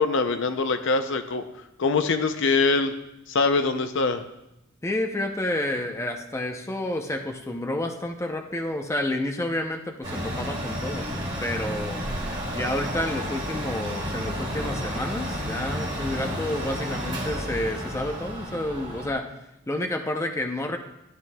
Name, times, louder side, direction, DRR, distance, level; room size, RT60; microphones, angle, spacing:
voice 1, 0.0-1.4 1.8-2.9 3.3-4.2, left 4 dB, 65° left, 9 dB, 0.6 m, -23 dB
voice 2, 4.8-12.0 12.6-19.3 19.7-20.8, left 1 dB, 15° left, 3 dB, 0.6 m, -30 dB
Mechanical fan, 10.0-19.1, equal, 25° right, 2.5 m, -31 dB
12.5 x 8.9 x 2.3 m, 0.88 s
head